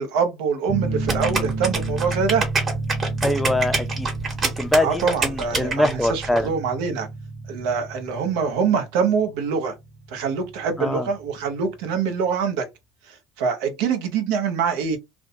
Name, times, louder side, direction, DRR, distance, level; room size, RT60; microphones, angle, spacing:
voice 1, 0.0-2.4 4.8-7.1 7.5-9.7 10.1-12.6 13.4-15.0, right 6 dB, 80° right, 0.7 m, -24 dB
sound 1, 0.7-11.9, right 3 dB, 10° right, 0.9 m, -32 dB
sound 2, 1.1-6.4, right 3 dB, 35° right, 1.1 m, -26 dB
voice 2, 3.2-4.1 4.4-6.5 10.8-11.1, left 1 dB, 5° left, 0.4 m, -23 dB
2.5 x 2.1 x 2.6 m
supercardioid pair, 100°, 0 cm